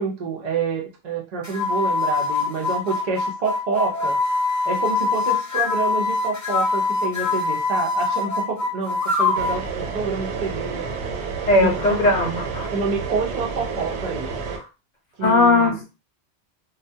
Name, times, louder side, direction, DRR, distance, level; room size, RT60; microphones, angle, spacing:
voice 1, 0.0-4.2 4.7-10.9 11.6-12.0 12.7-14.3 15.2-15.8, right 4 dB, 50° right, -1 dB, 0.5 m, -27 dB
sound 1, 1.4-9.6, left 3 dB, 25° left, 0.4 m, -23 dB
sound 2, 9.3-14.6, right 5 dB, 85° right, 0.8 m, -30 dB
voice 2, 11.5-12.7 15.2-15.9, left 2 dB, 50° left, 1 dB, 0.8 m, -18 dB
2.2 x 2.1 x 2.6 m, 0.29 s
omnidirectional pair, 1.1 m